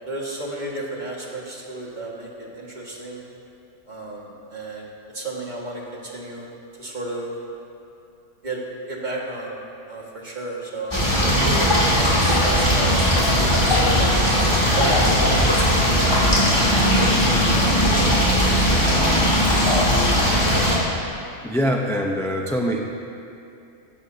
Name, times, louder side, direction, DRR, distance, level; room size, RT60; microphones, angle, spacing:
voice 1, 0.1-3.2 3.9-6.5 6.8-7.3 8.4-8.6 8.9-9.6 9.9-11.0 11.5-14.1 14.8-16.2 16.7-17.0 17.5-17.8, right 2 dB, 35° right, -3 dB, 2.0 m, -32 dB
sound 1, 10.9-20.8, equal, 20° left, 2.6 m, -18 dB
voice 2, 21.4-22.8, equal, 5° left, 0 dB, 0.6 m, -23 dB
16.0 x 14.5 x 2.8 m, 2.6 s
omnidirectional pair, 1.3 m